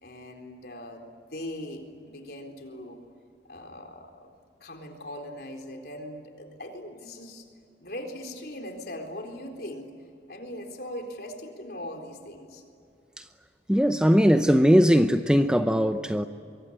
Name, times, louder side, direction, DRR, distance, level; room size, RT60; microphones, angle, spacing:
voice 1, 0.0-3.0 3.4-4.3 4.6-7.5 7.8-9.9 10.3-12.6, left 1 dB, 60° left, 3 dB, 4.1 m, -40 dB
voice 2, 13.7-16.2, equal, 5° right, 8 dB, 0.7 m, -20 dB
25.5 x 23.5 x 9.9 m, 2.4 s
head